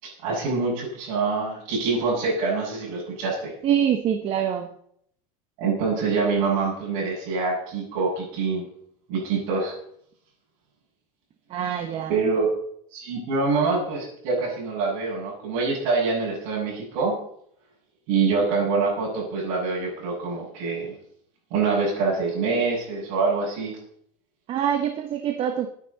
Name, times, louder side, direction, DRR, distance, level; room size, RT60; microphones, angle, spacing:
voice 1, 0.0-3.5 5.6-8.7 9.1-9.7 12.1-12.5 12.9-17.1 18.1-20.9 21.5-23.7, right 4 dB, 60° right, -8 dB, 6.7 m, -25 dB
voice 2, 3.6-4.7 11.5-12.2 24.5-25.7, right 9 dB, 30° right, 6 dB, 1.1 m, -25 dB
22.0 x 9.6 x 4.1 m, 0.67 s
cardioid pair, 165°, 18 cm